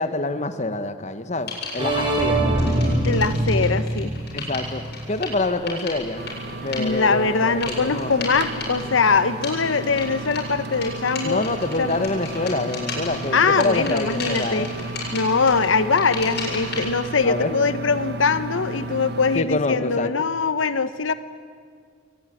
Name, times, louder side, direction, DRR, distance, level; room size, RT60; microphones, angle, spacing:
voice 1, 0.0-3.0 4.3-4.8 5.1-6.2 6.6-8.3 11.2-14.7 17.2-17.5 19.3-20.1, left 2 dB, 35° left, 10 dB, 1.2 m, -26 dB
sound 1, 1.5-2.1 2.6-17.1, left 4 dB, 55° left, 7.6 m, -35 dB
sound 2, 1.8-5.6, right 1 dB, 25° right, 5.4 m, -24 dB
voice 2, 3.0-4.1 6.8-11.4 11.8-12.1 13.3-14.7 15.1-21.1, left 4 dB, 85° left, 13 dB, 0.9 m, -22 dB
sound 3, 6.2-19.4, right 2 dB, 55° right, 1.4 m, -33 dB
21.5 x 20.0 x 9.8 m, 2.1 s
head